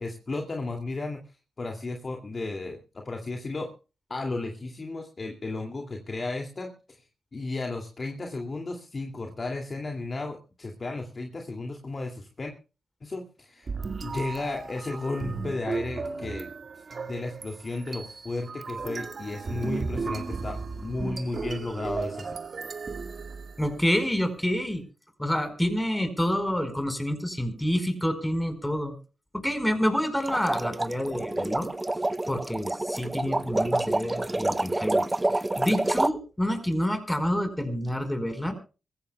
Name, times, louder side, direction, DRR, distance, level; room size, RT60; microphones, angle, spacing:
voice 1, 0.0-3.7 4.1-7.0 7.3-12.5 13.0-13.7 14.0-22.3, left 2 dB, 45° left, 2 dB, 2.5 m, -34 dB
sound 1, 13.7-24.0, right 4 dB, 55° right, 1.8 m, -35 dB
voice 2, 23.6-24.8 25.2-28.9 29.3-31.7 32.2-35.1 35.6-38.5, equal, 10° left, 8 dB, 4.8 m, -28 dB
sound 2, 30.3-36.1, right 2 dB, 20° right, 0.6 m, -28 dB
25.0 x 15.5 x 2.3 m, 0.33 s
supercardioid pair, 40°, 0 cm